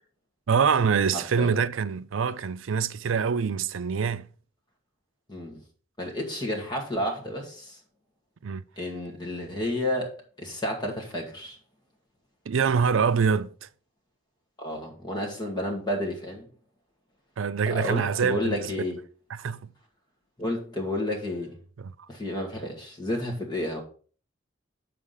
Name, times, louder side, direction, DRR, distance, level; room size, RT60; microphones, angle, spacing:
voice 1, 0.5-4.3 8.4-8.6 12.5-13.5 17.4-18.7 19.3-19.6 21.8-21.9, right 6 dB, 80° right, 0.5 m, -25 dB
voice 2, 1.1-1.6 5.3-5.6 6.0-7.8 8.8-10.1 10.4-11.6 14.6-16.5 17.7-19.0 20.4-21.6 22.1-23.8, left 1 dB, 20° left, 2.1 m, -31 dB
7.1 x 5.0 x 5.6 m
head